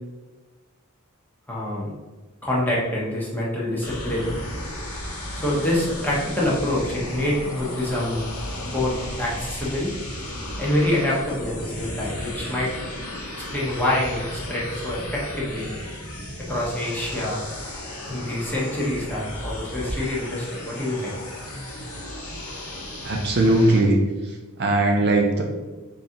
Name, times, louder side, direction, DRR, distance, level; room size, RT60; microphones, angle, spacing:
voice 1, 1.5-1.9 2.4-4.3 5.4-8.2 8.6-9.9 10.6-12.7 13.5-15.7 16.5-17.4 18.1-21.1, left 1 dB, 10° left, -6 dB, 1.0 m, -26 dB
sound 1, 3.8-23.8, left 1 dB, 80° left, 1.0 m, -34 dB
voice 2, 22.9-25.4, right 2 dB, 50° right, 1 dB, 0.5 m, -20 dB
4.0 x 2.8 x 3.7 m, 1.2 s
head